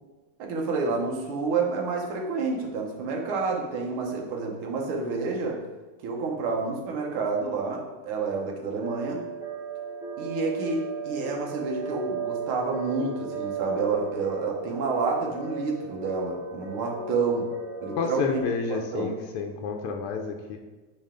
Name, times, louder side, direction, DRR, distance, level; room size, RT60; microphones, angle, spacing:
voice 1, 0.4-5.6 6.0-9.3 10.2-17.5 17.8-18.4 18.7-19.2, right 4 dB, 75° right, 0 dB, 1.8 m, -29 dB
sound 1, 8.8-18.4, right 4 dB, 45° right, 2.4 m, -35 dB
voice 2, 18.0-20.6, left 5 dB, 90° left, 2 dB, 1.6 m, -30 dB
8.5 x 3.3 x 3.7 m, 1.2 s
omnidirectional pair, 2.4 m